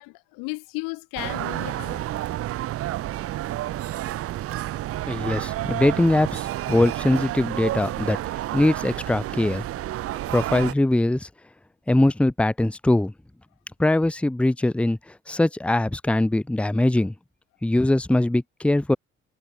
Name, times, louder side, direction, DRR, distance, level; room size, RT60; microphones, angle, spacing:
voice 1, 0.0-2.0, left 28 dB, 65° left, 0.6 m, -34 dB
sound 1, 1.2-10.7, right 14 dB, 40° right, 0.5 m, -30 dB
voice 2, 5.1-8.2 8.5-9.6 10.3-11.3 11.9-13.1 13.8-15.0 15.3-17.1 17.6-19.0, left 1 dB, 5° left, 0.7 m, -21 dB
hypercardioid pair, 50°, 35 cm